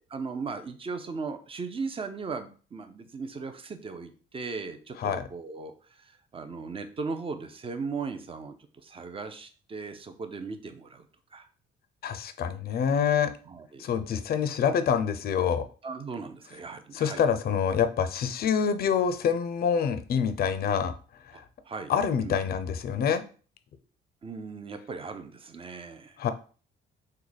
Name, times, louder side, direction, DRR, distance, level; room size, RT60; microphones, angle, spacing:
voice 1, 0.0-11.5 13.5-13.9 15.8-17.2 21.3-22.4 24.2-26.2, right 4 dB, 25° right, 8 dB, 0.5 m, -38 dB
voice 2, 12.0-13.3 13.8-15.6 16.9-20.9 21.2-21.4 21.9-23.2 26.2-26.3, left 7 dB, 50° left, 10 dB, 0.4 m, -26 dB
3.2 x 2.2 x 3.9 m, 0.38 s
cardioid pair, 100°, 21 cm